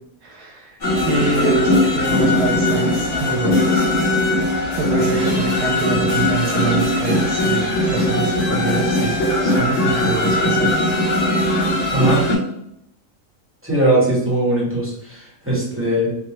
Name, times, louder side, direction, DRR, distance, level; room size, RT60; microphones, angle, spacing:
voice 1, 0.2-0.8 1.0-3.9 4.7-9.2 9.4-10.9, right 4 dB, 85° right, 0 dB, 1.1 m, -25 dB
sound 1, 0.8-12.3, left 1 dB, 35° left, 1.4 m, -19 dB
voice 2, 11.9-12.3 13.6-16.1, right 1 dB, 10° right, -7 dB, 1.0 m, -20 dB
3.8 x 2.2 x 3.0 m, 0.75 s
omnidirectional pair, 1.6 m